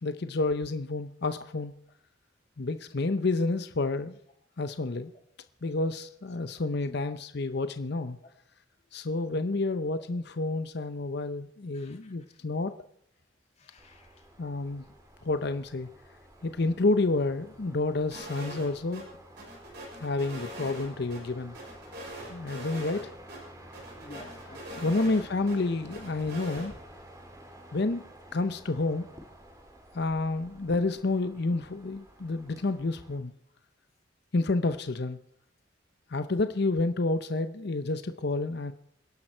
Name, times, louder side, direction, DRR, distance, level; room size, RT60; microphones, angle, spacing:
voice 1, 0.0-1.7 2.6-4.2 4.6-5.1 5.6-8.2 8.9-12.7 14.4-14.8 15.2-15.9 16.4-19.0 20.0-21.6 22.3-23.1 24.8-26.7 27.7-28.0 28.3-29.1 29.9-33.3 34.3-35.2 36.1-38.7, left 3 dB, 60° left, 10 dB, 0.7 m, -29 dB
voice 2, 11.7-12.4 13.6-14.3 24.0-25.2 38.0-38.1, left 2 dB, 35° left, 3 dB, 2.3 m, -53 dB
sound 1, 13.8-33.2, right 1 dB, 20° right, 2.3 m, -51 dB
sound 2, 18.1-18.7 18.9-19.0 19.4-21.2 21.5-23.0 23.3-23.4 23.7-25.6 25.9-26.7, equal, 60° right, 6.7 m, -42 dB
27.5 x 11.0 x 4.5 m, 0.68 s
head